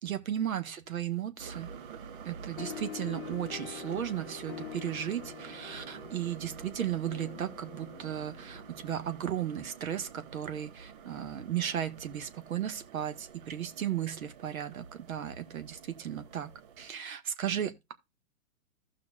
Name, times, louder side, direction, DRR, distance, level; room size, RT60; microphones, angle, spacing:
voice 1, 0.0-1.7 2.3-16.5 16.8-17.9, right 10 dB, 70° right, 1.8 m, -35 dB
sound 1, 1.4-16.9, right 6 dB, 35° right, 0.9 m, -48 dB
sound 2, 2.6-9.5, left 13 dB, 40° left, 0.6 m, -46 dB
15.5 x 5.7 x 2.5 m
hypercardioid pair, 145°, 44 cm